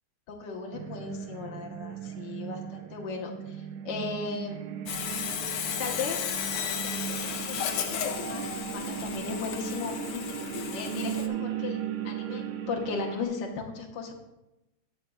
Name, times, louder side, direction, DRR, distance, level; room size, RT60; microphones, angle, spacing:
voice 1, 0.3-4.6 5.8-10.2 10.7-14.1, left 4 dB, 60° left, 0 dB, 1.8 m, -37 dB
sound 1, 0.7-13.2, right 10 dB, 80° right, 1.5 m, -37 dB
Sawing, 4.9-11.3, left 8 dB, 85° left, 1.7 m, -34 dB
19.5 x 6.6 x 2.4 m, 0.96 s
omnidirectional pair, 2.4 m